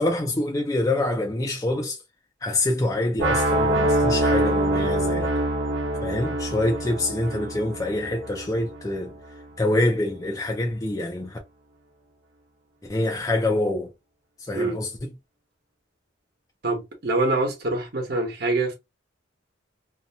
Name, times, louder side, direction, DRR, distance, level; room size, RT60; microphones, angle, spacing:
voice 1, 0.0-2.0 2.4-5.3 6.0-9.1 9.6-11.4 12.9-13.9 14.5-15.1, left 1 dB, 20° left, 0.4 m, -25 dB
sound 1, 3.2-9.1, right 1 dB, 80° right, 0.8 m, -25 dB
voice 2, 16.6-18.7, right 2 dB, 55° right, 1.1 m, -25 dB
2.7 x 2.2 x 2.7 m
head